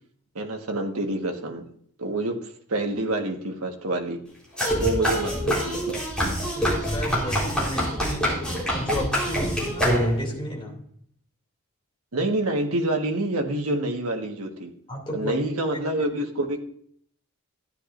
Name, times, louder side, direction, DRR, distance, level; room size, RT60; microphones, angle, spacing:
voice 1, 0.3-1.6 2.0-2.4 2.7-4.2 4.8-6.0 12.1-14.7 15.1-16.6, right 1 dB, 70° right, 2 dB, 1.4 m, -27 dB
sound 1, 4.6-10.4, equal, 5° left, 3.9 m, -25 dB
voice 2, 6.5-10.8 14.9-15.4, left 1 dB, 20° left, -1 dB, 2.6 m, -33 dB
13.5 x 10.0 x 2.6 m, 0.62 s
head